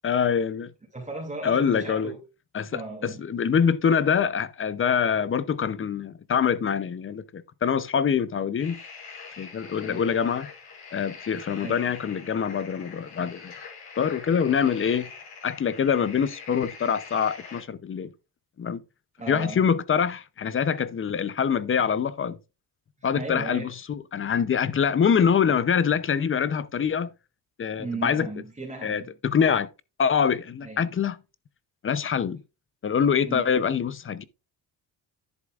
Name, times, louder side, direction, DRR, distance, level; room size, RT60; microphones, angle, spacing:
voice 1, 0.0-0.7 1.4-2.1 2.5-8.8 9.4-10.5 10.9-13.5 14.0-15.1 15.4-18.1 18.6-18.8 19.3-22.4 23.0-27.1 27.6-28.3 28.8-29.7 30.0-31.2 31.8-32.4 32.8-34.2, left 7 dB, 30° left, 0.6 m, -25 dB
voice 2, 0.9-2.2 2.7-3.2 9.8-10.1 11.6-11.9 19.2-19.6 23.0-23.7 27.8-29.1 30.6-30.9 33.2-33.5, right 3 dB, 15° right, 2.4 m, -36 dB
sound 1, 8.6-17.6, left 5 dB, 70° left, 5.7 m, -44 dB
11.0 x 7.7 x 2.4 m
cardioid pair, 120°, 41 cm